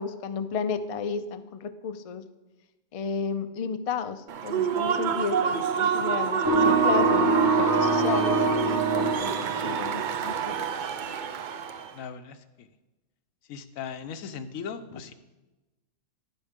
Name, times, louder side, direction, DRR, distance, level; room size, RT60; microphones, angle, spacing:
voice 1, 0.0-2.3 2.9-10.6 14.9-15.0, left 6 dB, 65° left, 10 dB, 0.3 m, -33 dB
Human voice / Cheering / Applause, 4.3-11.9, right 7 dB, 70° right, 0.4 m, -28 dB
sound 1, 6.4-10.3, right 3 dB, 15° right, 0.9 m, -24 dB
voice 2, 11.9-12.7 13.5-15.1, left 6 dB, 85° left, 11 dB, 1.1 m, -38 dB
11.0 x 10.0 x 3.6 m, 1.1 s
omnidirectional pair, 1.4 m